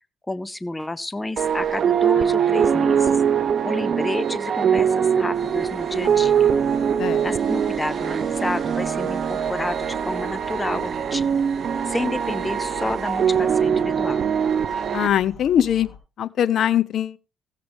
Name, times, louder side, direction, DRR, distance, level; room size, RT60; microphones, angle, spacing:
voice 1, 0.3-3.2 3.6-6.5 7.2-11.4 11.9-14.3, left 2 dB, 15° left, 0.6 m, -30 dB
sound 1, 1.4-15.1, right 8 dB, 55° right, 0.6 m, -22 dB
sound 2, 5.3-16.0, left 6 dB, 35° left, 3.0 m, -45 dB
voice 2, 14.9-15.9 16.2-17.2, left 10 dB, 65° left, 0.6 m, -21 dB
16.0 x 7.6 x 3.4 m
cardioid pair, 90°, 0 cm